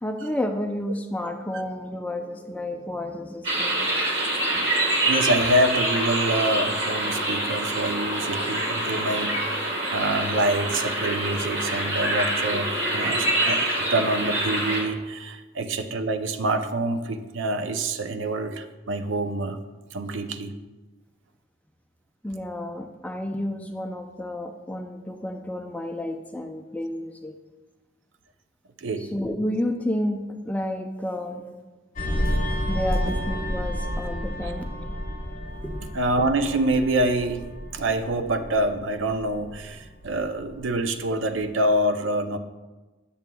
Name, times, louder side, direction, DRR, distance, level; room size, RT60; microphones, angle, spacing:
voice 1, 0.0-4.2 22.2-27.4 29.1-31.4 32.7-34.7 35.6-35.9, left 1 dB, 10° left, 5 dB, 0.4 m, -31 dB
sound 1, 3.4-14.8, right 1 dB, 60° right, 1.4 m, -26 dB
voice 2, 5.1-19.6 19.9-20.5 28.8-29.1 32.3-32.4 33.1-33.2 34.4-34.5 35.9-37.4 37.7-42.4, right 1 dB, 80° right, 8 dB, 0.5 m, -26 dB
sound 2, 32.0-41.0 41.3-41.6, equal, 40° left, 0.9 m, -31 dB
9.1 x 6.9 x 2.2 m, 1.2 s
head